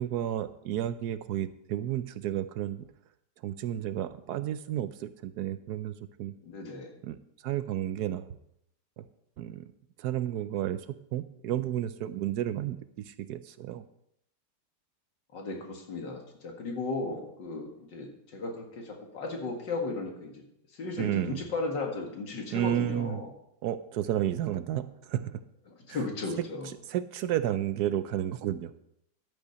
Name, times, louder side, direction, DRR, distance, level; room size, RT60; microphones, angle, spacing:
voice 1, 0.0-2.9 3.4-6.3 7.0-7.2 7.4-8.4 9.0-9.1 9.4-9.7 10.0-10.9 11.1-13.8 21.0-21.4 22.5-23.2 23.6-25.4 25.9-26.0 26.9-28.7, right 12 dB, 70° right, 13 dB, 1.0 m, -32 dB
voice 2, 6.5-6.9 15.3-20.4 20.7-23.3 25.7-26.7, left 3 dB, 75° left, 2 dB, 2.5 m, -35 dB
11.5 x 8.4 x 5.2 m, 0.76 s
omnidirectional pair, 2.0 m